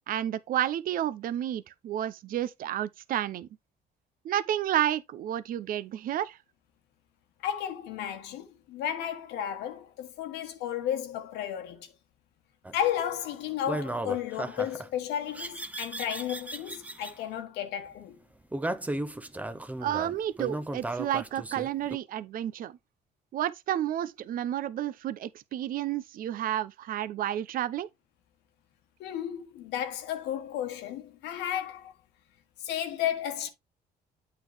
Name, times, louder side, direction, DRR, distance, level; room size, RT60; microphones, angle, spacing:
voice 1, 0.1-3.5 4.2-6.4 19.8-22.8 23.3-27.9, right 11 dB, 55° right, 0.6 m, -31 dB
voice 2, 7.4-11.9 12.7-18.2 29.0-31.9 32.6-33.5, left 10 dB, 85° left, 1.4 m, -33 dB
sound 1, 12.6-12.9 13.7-14.9 15.3-17.1 18.5-22.0, right 1 dB, 10° right, 0.6 m, -35 dB
8.4 x 4.6 x 3.4 m
cardioid pair, 110°, 17 cm